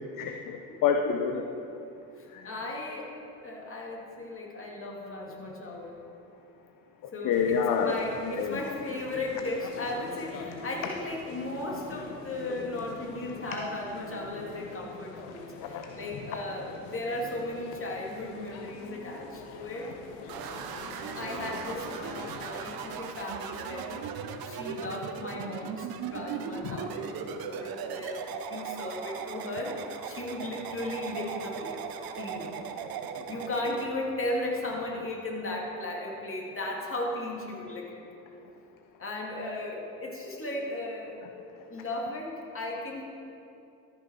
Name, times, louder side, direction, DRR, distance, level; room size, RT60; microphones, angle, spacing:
voice 1, 0.2-1.5 2.3-2.5 7.0-8.6 15.6-15.8 26.6-26.8, left 6 dB, 45° left, 4 dB, 0.7 m, -28 dB
voice 2, 2.2-3.1 3.4-6.0 7.1-19.9 21.1-24.1 24.4-31.8 32.2-32.6 33.3-38.0 39.0-41.2 41.7-43.0, left 2 dB, 25° left, -2 dB, 2.5 m, -36 dB
sound 1, 7.3-23.0, left 4 dB, 70° left, 1.1 m, -44 dB
sound 2, 20.3-33.9, right 7 dB, 50° right, 0.9 m, -38 dB
13.5 x 6.1 x 4.7 m, 2.7 s
hypercardioid pair, 60°, 46 cm